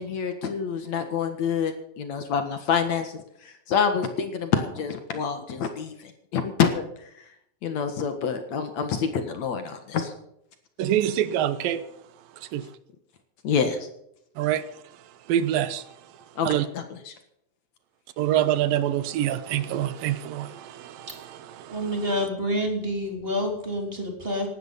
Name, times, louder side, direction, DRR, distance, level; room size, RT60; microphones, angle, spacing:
voice 1, 0.0-3.2 3.7-6.8 7.6-10.1 13.4-13.8 16.4-17.1, left 6 dB, 60° left, 2.6 m, -27 dB
voice 2, 10.8-11.8 12.5-12.7 14.4-14.7 15.3-15.9 16.4-16.7 18.2-21.9, right 11 dB, 85° right, 2.7 m, -26 dB
voice 3, 21.7-24.5, equal, 15° right, 3.6 m, -28 dB
17.5 x 12.0 x 5.4 m
omnidirectional pair, 4.0 m